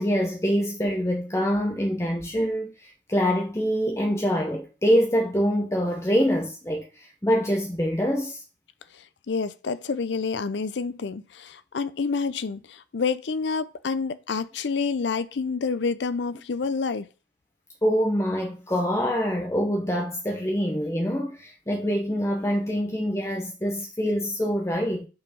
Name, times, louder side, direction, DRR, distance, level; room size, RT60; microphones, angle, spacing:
voice 1, 0.0-8.4 17.8-25.1, equal, 15° left, 0.8 m, -25 dB
voice 2, 9.0-17.1, left 4 dB, 80° left, 0.5 m, -28 dB
5.4 x 4.5 x 5.5 m
head